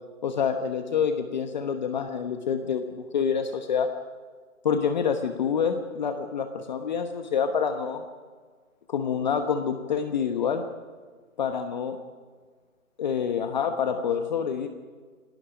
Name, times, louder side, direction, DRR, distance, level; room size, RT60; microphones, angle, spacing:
voice 1, 0.2-3.9 4.6-8.0 8.9-10.6 11.4-12.0 13.0-14.7, left 7 dB, 30° left, 7 dB, 1.1 m, -27 dB
28.0 x 18.5 x 5.1 m, 1.5 s
hypercardioid pair, 155°, 42 cm